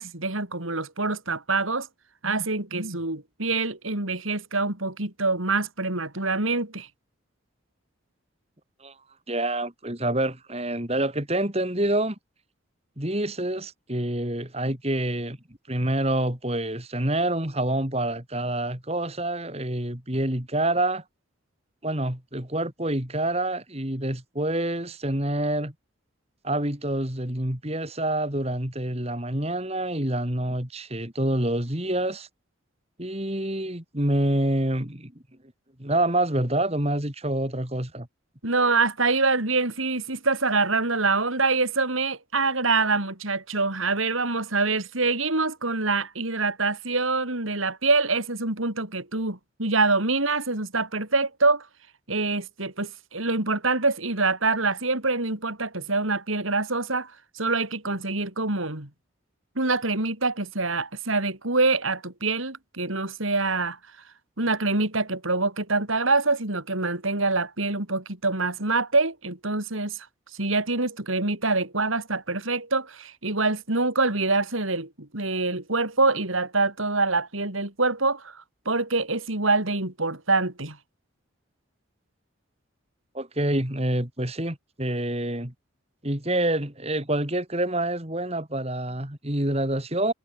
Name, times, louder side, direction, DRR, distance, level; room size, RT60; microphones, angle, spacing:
voice 1, 0.0-1.9 2.2-6.9 38.4-51.7 52.1-58.9 59.6-63.8 64.4-70.1 70.3-80.8, right 3 dB, 85° right, 4.8 m, -25 dB
voice 2, 9.3-12.1 13.0-15.4 15.7-21.0 21.8-25.7 26.4-32.3 33.0-35.1 35.8-38.1 83.1-85.5 86.0-90.1, right 1 dB, 30° right, 3.3 m, -27 dB
head